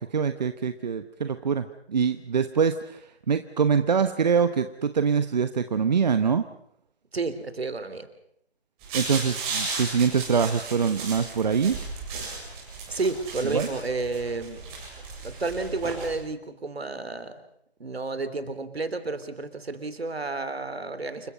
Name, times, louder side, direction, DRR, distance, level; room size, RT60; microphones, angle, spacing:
voice 1, 0.1-6.4 8.9-11.8 13.5-13.7, right 6 dB, 40° right, 10 dB, 1.0 m, -24 dB
voice 2, 7.1-8.1 12.9-14.6 15.2-17.3 17.8-21.3, right 3 dB, 70° right, 11 dB, 3.5 m, -31 dB
sound 1, 8.8-16.2, right 4 dB, 15° right, 7.8 m, -35 dB
28.5 x 22.5 x 5.5 m, 0.73 s
figure-of-eight pair, 150°, 32 cm